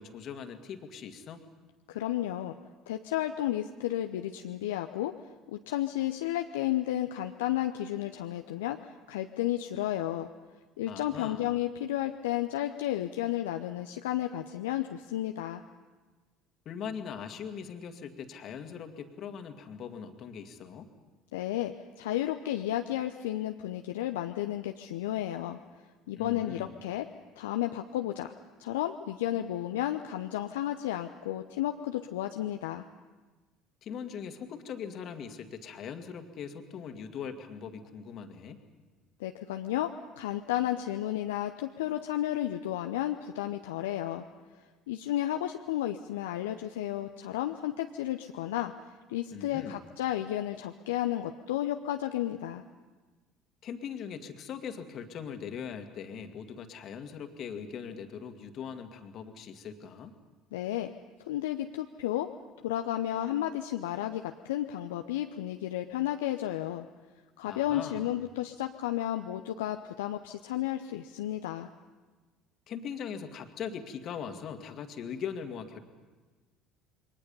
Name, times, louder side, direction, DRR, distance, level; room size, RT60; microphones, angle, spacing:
voice 1, 0.0-1.4 10.9-11.5 16.7-20.9 26.2-26.7 33.8-38.6 49.3-49.8 53.6-60.1 67.4-68.2 72.7-75.8, left 7 dB, 50° left, 7 dB, 2.0 m, -40 dB
voice 2, 1.9-2.6 2.9-10.3 10.8-15.6 21.3-25.6 26.1-27.1 27.4-28.3 28.6-32.9 39.2-44.3 44.9-48.7 49.1-52.6 60.5-60.9 61.2-62.3 62.6-66.9 67.4-71.7, left 13 dB, 70° left, 6 dB, 0.6 m, -32 dB
28.0 x 23.0 x 5.5 m, 1.3 s
figure-of-eight pair, 60°, 0 cm